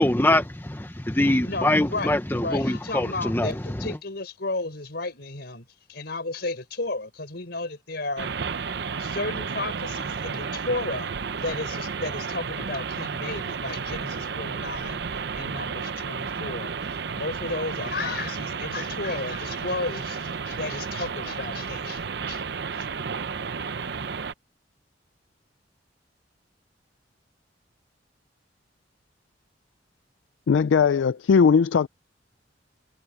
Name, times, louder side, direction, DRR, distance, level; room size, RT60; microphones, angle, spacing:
voice 1, 0.0-3.9, left 1 dB, 10° left, 0.8 m, -23 dB
voice 2, 1.4-8.3 9.0-11.1 11.4-15.0 15.3-16.7 17.1-22.4 22.7-22.9, left 3 dB, 60° left, 5.0 m, -33 dB
sound 1, 8.2-24.3, right 5 dB, 65° right, 0.7 m, -32 dB
voice 3, 30.5-31.9, left 6 dB, 80° left, 0.4 m, -19 dB
head